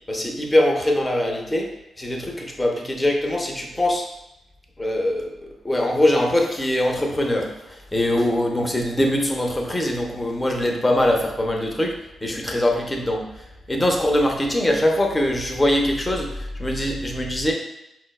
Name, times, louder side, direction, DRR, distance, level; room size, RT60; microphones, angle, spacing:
voice 1, 0.1-1.7 2.0-4.1 4.8-13.2 13.7-17.5, left 1 dB, 15° left, 1 dB, 0.6 m, -22 dB
4.6 x 2.2 x 2.3 m, 0.85 s
cardioid pair, 95°, 0 cm